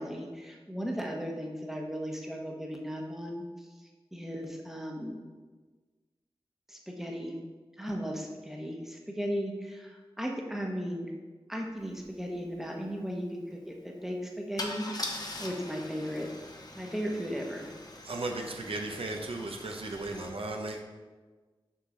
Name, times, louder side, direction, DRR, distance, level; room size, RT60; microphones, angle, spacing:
voice 1, 0.0-3.4 4.1-5.2 6.7-7.4 7.8-11.1 11.5-14.9 15.4-16.3 16.7-17.7, equal, 5° right, 0 dB, 1.0 m, -36 dB
Car / Engine starting / Idling, 12.0-12.1 12.3-12.6 14.6-20.3, left 1 dB, 40° left, 0.9 m, -42 dB
voice 2, 18.0-20.8, right 2 dB, 75° right, 2 dB, 0.7 m, -36 dB
6.4 x 5.7 x 3.8 m, 1.3 s
wide cardioid pair, 75°, 10 cm